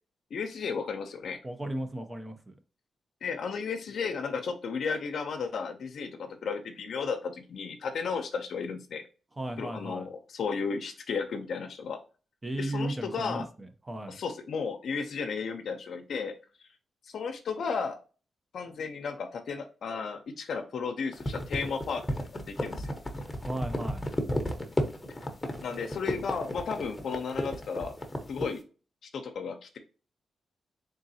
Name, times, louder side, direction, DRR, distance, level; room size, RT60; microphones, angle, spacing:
voice 1, 0.3-1.4 3.2-9.0 9.6-12.0 12.6-13.4 14.1-16.3 17.1-18.0 18.5-22.0 22.5-22.9 25.6-27.9 28.3-28.6 29.1-29.8, left 5 dB, 70° left, 5 dB, 0.6 m, -34 dB
voice 2, 1.4-2.6 9.4-10.1 12.4-14.2 23.4-24.0, right 1 dB, 25° right, 7 dB, 0.7 m, -35 dB
sound 1, 21.1-28.6, left 1 dB, 20° left, 0.9 m, -33 dB
3.8 x 3.7 x 2.7 m, 0.35 s
cardioid pair, 90°, 0 cm